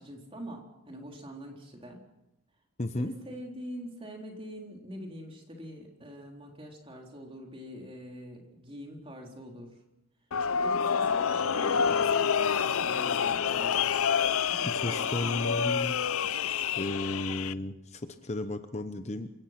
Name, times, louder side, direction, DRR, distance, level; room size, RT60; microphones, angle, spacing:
voice 1, 0.0-2.0 2.9-9.7 10.6-12.0 12.5-13.9 14.5-15.8, equal, 25° right, 1 dB, 3.8 m, -44 dB
voice 2, 2.8-3.1 14.7-15.9 16.8-19.3, left 2 dB, 30° left, 8 dB, 0.9 m, -33 dB
sound 1, 10.3-17.5, left 7 dB, 75° left, 0.6 m, -28 dB
27.0 x 16.5 x 6.0 m, 0.91 s
head